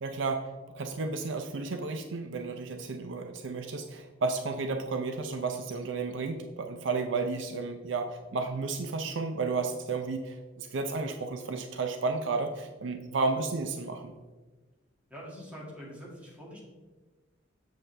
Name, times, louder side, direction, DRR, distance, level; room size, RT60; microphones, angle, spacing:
voice 1, 0.0-14.1, right 4 dB, 65° right, 6 dB, 0.5 m, -32 dB
voice 2, 15.1-16.6, equal, 5° right, -4 dB, 2.0 m, -45 dB
7.3 x 7.2 x 3.3 m, 1.3 s
head